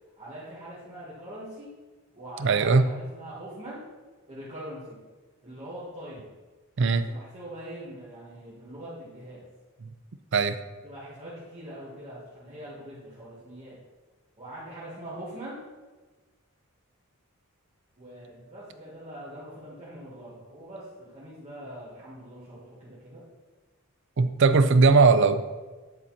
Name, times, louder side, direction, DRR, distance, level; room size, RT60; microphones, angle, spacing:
voice 1, 0.2-1.7 2.1-3.8 4.3-5.0 5.4-6.3 6.9-9.5 10.8-13.8 14.4-15.6 18.0-23.2, right 1 dB, 30° right, -10 dB, 2.0 m, -42 dB
voice 2, 2.4-2.9 6.8-7.1 10.3-10.6 24.2-25.4, right 4 dB, 55° right, 11 dB, 0.5 m, -19 dB
10.0 x 4.1 x 4.4 m, 1.3 s
head